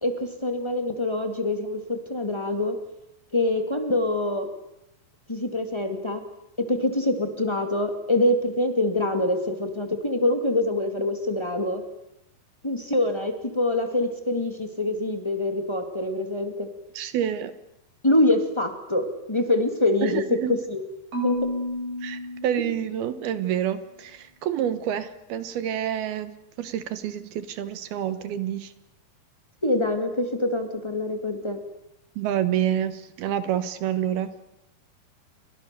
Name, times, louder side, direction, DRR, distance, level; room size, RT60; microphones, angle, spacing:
voice 1, 0.0-2.8 3.3-4.5 5.3-6.2 6.6-11.8 12.6-16.7 18.0-20.2 20.5-20.8 21.2-21.4 29.6-31.6, left 1 dB, 20° left, 6 dB, 0.7 m, -25 dB
voice 2, 16.9-17.5 20.0-20.6 22.0-26.3 26.6-28.7 32.2-34.3, right 10 dB, 70° right, 12 dB, 2.9 m, -28 dB
Marimba xylophone / Wood, 21.1-23.3, left 2 dB, 55° right, 8.1 m, -31 dB
30.0 x 24.0 x 6.8 m, 0.84 s
omnidirectional pair, 4.9 m